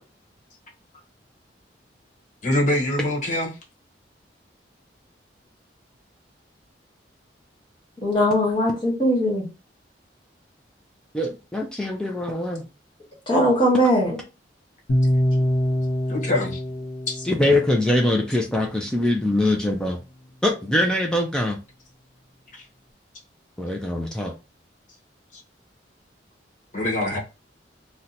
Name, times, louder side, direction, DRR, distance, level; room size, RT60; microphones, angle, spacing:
voice 1, 2.4-3.6 16.1-16.6 17.1-17.2 22.5-22.6 25.3-25.4 26.7-27.2, left 1 dB, 45° left, -1 dB, 1.1 m, -24 dB
voice 2, 8.0-9.5 13.3-14.2, equal, 25° left, -3 dB, 1.4 m, -20 dB
voice 3, 11.1-12.7 17.3-20.0 20.4-21.6 23.6-24.3, left 1 dB, 5° left, 1 dB, 0.4 m, -23 dB
sound 1, 14.9-19.0, equal, 70° left, 0.7 m, -25 dB
2.8 x 2.1 x 3.8 m, 0.29 s
head